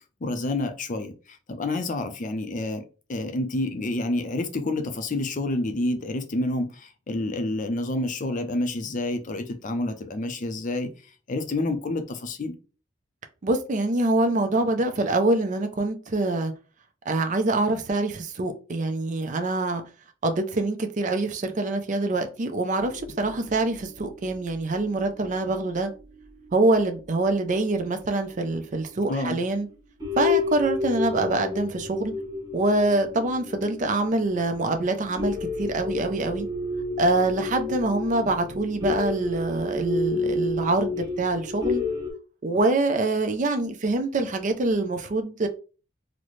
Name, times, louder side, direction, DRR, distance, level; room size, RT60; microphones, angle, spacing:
voice 1, 0.2-10.9 11.3-12.6 29.1-29.4, left 2 dB, 40° left, 0.5 m, -28 dB
voice 2, 13.4-16.5 17.1-19.8 20.2-25.9 26.5-29.7 30.2-32.1 32.5-36.5 37.0-41.8 42.4-45.5, right 2 dB, 40° right, 0.5 m, -25 dB
sound 1, 22.8-26.7 27.2-27.3 28.3-28.4 28.9-29.0 29.5-29.7 30.0-42.1, left 3 dB, 20° right, 0.9 m, -31 dB
3.9 x 2.1 x 3.1 m
head